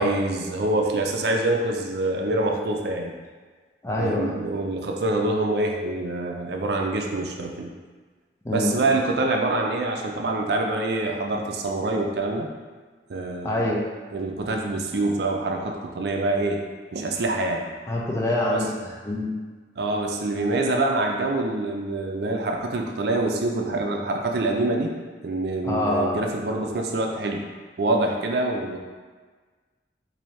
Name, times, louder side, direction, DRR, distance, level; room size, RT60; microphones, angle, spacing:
voice 1, 0.0-3.1 4.0-7.7 8.5-12.5 13.1-13.7 14.1-16.6 16.9-17.7 18.5-18.7 19.8-24.9 25.2-27.4 27.8-28.8, right 2 dB, 65° right, 2 dB, 0.4 m, -25 dB
voice 2, 3.8-4.4 8.4-8.8 13.4-13.8 17.9-18.7 19.0-19.3 25.6-26.2, left 1 dB, 15° left, -4 dB, 0.5 m, -25 dB
4.2 x 2.6 x 3.1 m, 1.4 s
head